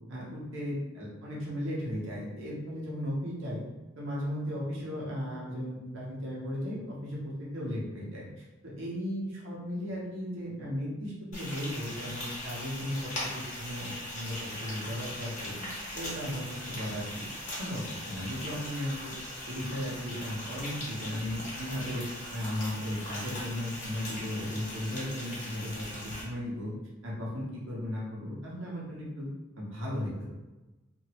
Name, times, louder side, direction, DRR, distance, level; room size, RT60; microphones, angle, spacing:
voice 1, 0.1-3.6 4.0-8.3 8.6-15.7 15.9-19.1 19.5-26.7 27.0-29.3 29.5-30.3, equal, 65° right, -5 dB, 0.9 m, -36 dB
Frying (food), 11.3-26.2, left 1 dB, 35° left, 1.1 m, -40 dB
2.9 x 2.6 x 2.9 m, 1.1 s
head